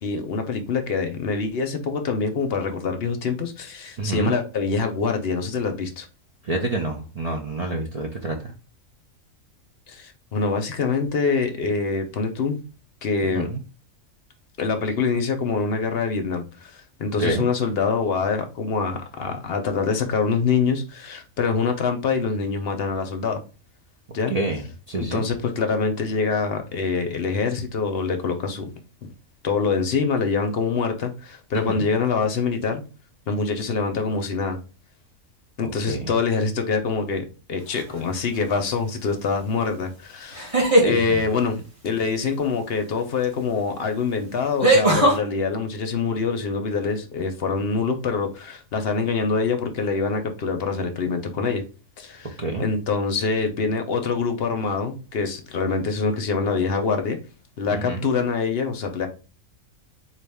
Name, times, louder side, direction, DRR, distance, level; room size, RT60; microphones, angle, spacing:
voice 1, 0.0-6.1 9.9-12.6 13.0-13.5 14.6-23.4 24.1-24.3 25.0-28.7 29.0-29.1 29.4-32.8 33.3-34.6 35.6-40.5 40.8-51.6 52.0-57.2 57.6-59.1, left 5 dB, 60° left, 0.7 m, -25 dB
voice 2, 4.0-4.3 6.4-8.5 13.3-13.6 17.2-17.5 24.3-25.2 31.5-31.9 35.6-36.2 41.1-41.2 52.4-52.7 57.7-58.1, right 2 dB, 60° right, 0.4 m, -28 dB
sound 1, 37.7-38.2 40.3-41.0 43.2-43.3 44.6-45.2, right 1 dB, 25° right, 1.4 m, -18 dB
4.0 x 2.6 x 3.4 m
omnidirectional pair, 1.4 m